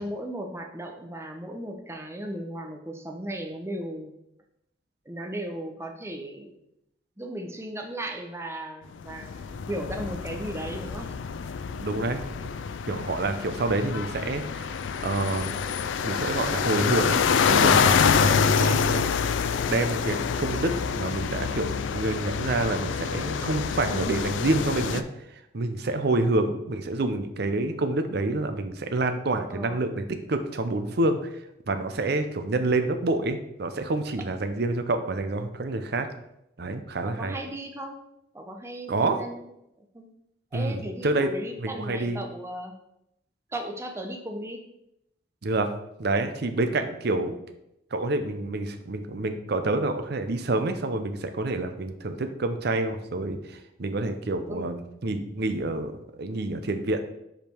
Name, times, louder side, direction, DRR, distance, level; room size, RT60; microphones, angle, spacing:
voice 1, 0.0-4.1 5.1-6.6 7.2-11.1 29.5-29.8 37.0-38.0 38.3-39.4 39.9-40.1 40.5-42.7 43.5-44.6 54.5-54.7, right 1 dB, 15° right, 3 dB, 0.7 m, -36 dB
sound 1, 9.0-25.0, left 6 dB, 90° left, 0.4 m, -26 dB
voice 2, 11.8-12.5 12.9-14.7 15.0-15.5 16.0-17.2 17.5-19.1 19.6-25.0 25.5-30.0 30.3-31.2 31.7-36.1 36.6-37.3 38.9-39.2 40.5-41.3 41.6-42.2 45.4-45.7 46.0-47.3 47.9-57.0, right 2 dB, 60° right, 7 dB, 0.6 m, -28 dB
5.3 x 5.0 x 4.4 m, 0.82 s
head